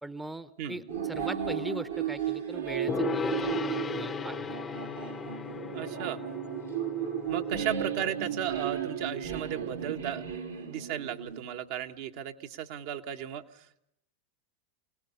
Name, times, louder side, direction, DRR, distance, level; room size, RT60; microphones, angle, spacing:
voice 1, 0.0-4.6, right 1 dB, 5° right, 14 dB, 0.8 m, -40 dB
sound 1, 0.9-11.5, right 9 dB, 85° right, 1.9 m, -34 dB
Gong, 2.9-10.3, left 6 dB, 25° left, 0.8 m, -38 dB
voice 2, 5.7-6.2 7.3-10.2 10.6-13.8, right 10 dB, 60° right, 5 dB, 1.2 m, -35 dB
27.0 x 18.0 x 5.6 m, 0.77 s
hypercardioid pair, 90°, 0 cm